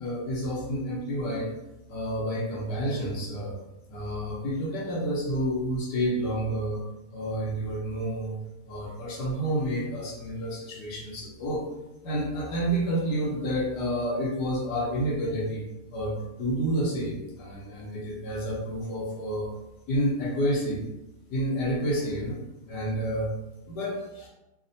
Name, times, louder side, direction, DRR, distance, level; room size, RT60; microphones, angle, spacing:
voice 1, 0.0-1.5 1.9-3.6 3.9-6.8 7.1-8.4 8.6-11.6 12.0-15.6 15.9-19.5 19.9-20.8 21.3-22.4 22.7-23.3 23.7-24.3, equal, 85° left, -3 dB, 1.4 m, -29 dB
3.3 x 2.1 x 2.6 m, 0.96 s
omnidirectional pair, 1.8 m